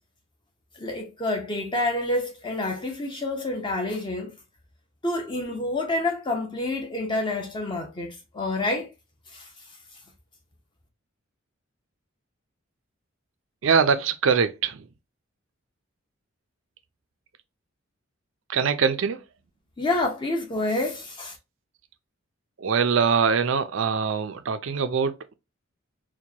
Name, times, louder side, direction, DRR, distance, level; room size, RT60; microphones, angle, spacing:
voice 1, 0.8-4.3 5.0-8.9 9.3-9.5 19.8-21.4, left 2 dB, 25° left, 0.8 m, -28 dB
voice 2, 13.6-14.9 18.5-19.2 22.6-25.3, right 6 dB, 65° right, 0.4 m, -23 dB
4.4 x 2.2 x 2.8 m
head